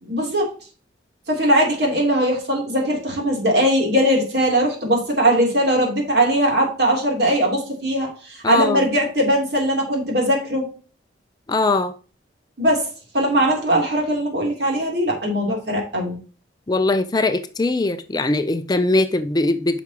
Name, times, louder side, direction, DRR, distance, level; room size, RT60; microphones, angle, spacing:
voice 1, 0.0-0.5 1.3-10.6 12.6-12.9 13.1-16.2, right 1 dB, 60° right, 3.1 m, -20 dB
voice 2, 8.4-8.8 11.5-11.9 16.7-19.8, left 2 dB, 20° left, 0.4 m, -20 dB
9.9 x 6.0 x 2.9 m
head